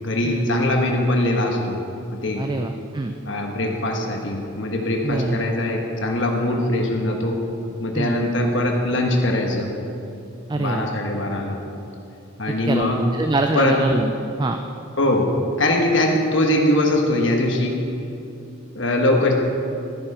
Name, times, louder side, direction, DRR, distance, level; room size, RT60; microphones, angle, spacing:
voice 1, 0.0-1.8 2.1-2.5 3.2-7.4 7.8-9.7 10.6-11.6 12.4-13.0 13.5-13.8 15.0-15.3 15.6-17.8 18.7-19.3, left 1 dB, 65° left, 1 dB, 1.4 m, -21 dB
voice 2, 2.4-3.1 5.0-5.4 7.9-8.2 10.5-10.9 12.7-14.1 14.4-14.6, right 2 dB, 20° right, 5 dB, 0.4 m, -24 dB
13.5 x 9.9 x 4.9 m, 2.7 s
head